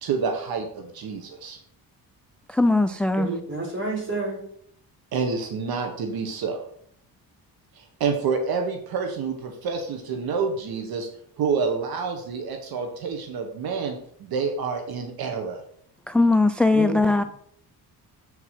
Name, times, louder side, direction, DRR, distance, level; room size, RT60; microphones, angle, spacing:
voice 1, 0.0-1.6 5.1-6.6 7.8-11.1 11.4-15.6, right 5 dB, 70° right, 1.2 m, -28 dB
voice 2, 2.5-3.3 16.1-17.2, left 2 dB, 5° left, 0.3 m, -20 dB
voice 3, 3.2-4.4 16.7-17.3, right 3 dB, 30° right, 4.0 m, -30 dB
7.7 x 4.8 x 5.8 m
cardioid pair, 95°, 38 cm